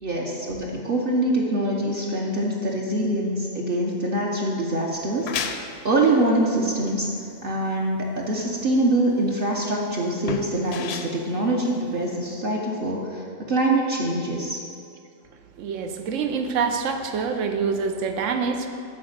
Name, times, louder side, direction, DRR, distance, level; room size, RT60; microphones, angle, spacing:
voice 1, 0.0-5.3 5.8-7.1 7.4-14.6, right 1 dB, 50° right, -2 dB, 0.9 m, -24 dB
sound 1, 4.9-12.4, left 7 dB, 65° left, 0.8 m, -36 dB
voice 2, 15.6-18.7, right 5 dB, 90° right, 6 dB, 1.0 m, -26 dB
8.6 x 4.1 x 6.5 m, 2.4 s
omnidirectional pair, 1.3 m